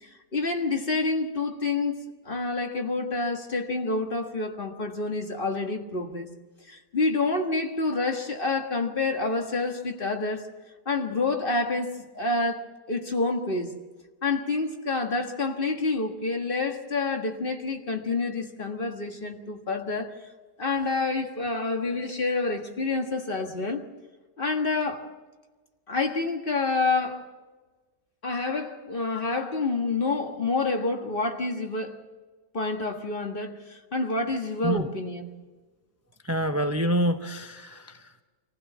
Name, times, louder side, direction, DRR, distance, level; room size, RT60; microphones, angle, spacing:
voice 1, 0.0-6.3 6.7-10.5 10.8-13.7 14.2-20.1 20.6-23.8 24.4-25.1 25.9-27.2 28.2-32.0 32.5-35.3, left 3 dB, 35° left, 1.6 m, -28 dB
voice 2, 36.2-38.2, equal, 15° right, 0.5 m, -27 dB
25.5 x 16.0 x 7.3 m
omnidirectional pair, 1.8 m